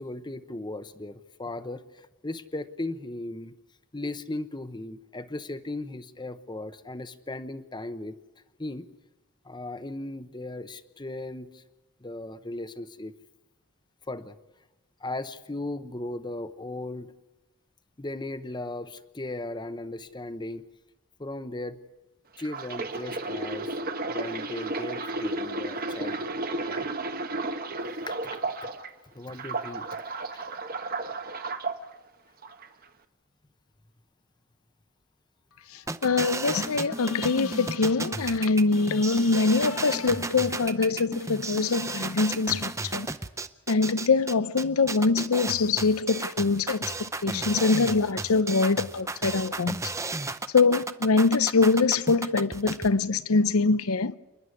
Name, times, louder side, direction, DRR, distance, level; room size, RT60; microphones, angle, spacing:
voice 1, 0.0-3.6 3.9-8.1 8.6-8.9 9.4-11.6 12.0-13.1 14.1-14.4 15.0-17.1 18.0-20.6 21.2-21.8 22.4-23.8 24.1-26.4 26.7-26.9 28.0-28.4 29.1-29.9 50.2-50.3, left 2 dB, 20° left, 0.9 m, -37 dB
sound 1, 22.4-28.9 29.3-31.8 32.4-32.7, right 2 dB, 45° right, 1.1 m, -33 dB
sound 2, 35.9-52.9, right 3 dB, 15° right, 0.7 m, -33 dB
voice 2, 36.0-43.1 43.7-49.8 50.5-54.2, left 4 dB, 80° left, 0.7 m, -24 dB
29.0 x 11.0 x 9.8 m
head